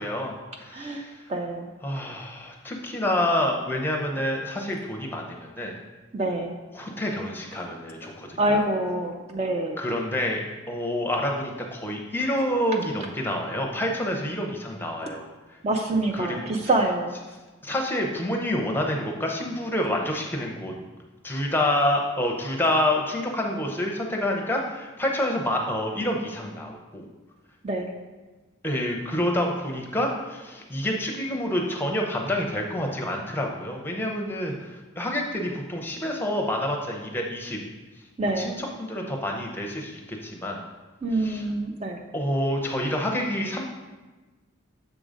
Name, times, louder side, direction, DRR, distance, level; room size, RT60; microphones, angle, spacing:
voice 1, 0.0-1.3 1.8-5.7 6.7-8.6 9.8-15.6 16.1-16.6 17.6-20.8 21.2-27.1 28.6-37.6 37.9-40.6 41.1-41.4 42.1-43.6, left 1 dB, 10° left, 0 dB, 0.6 m, -28 dB
voice 2, 1.3-1.7 6.1-6.6 8.4-9.8 15.6-17.1 27.6-27.9 38.2-38.6 41.0-42.0, right 2 dB, 30° right, 3 dB, 0.4 m, -26 dB
7.0 x 3.8 x 5.0 m, 1.2 s
head